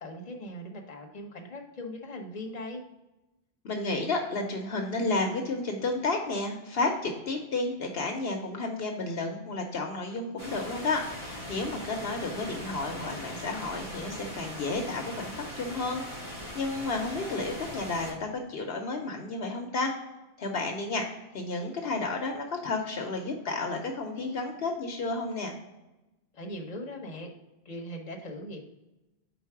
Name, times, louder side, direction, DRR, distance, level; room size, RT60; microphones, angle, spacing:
voice 1, 0.0-2.8 26.3-27.3 27.6-28.6, left 1 dB, 40° left, 2 dB, 1.0 m, -40 dB
voice 2, 3.6-19.9 20.4-21.1 21.3-25.5, left 3 dB, 70° left, 3 dB, 1.0 m, -32 dB
sound 1, 10.4-18.1, left 1 dB, 35° right, 1.8 m, -40 dB
4.7 x 3.9 x 5.7 m, 1.0 s
omnidirectional pair, 1.1 m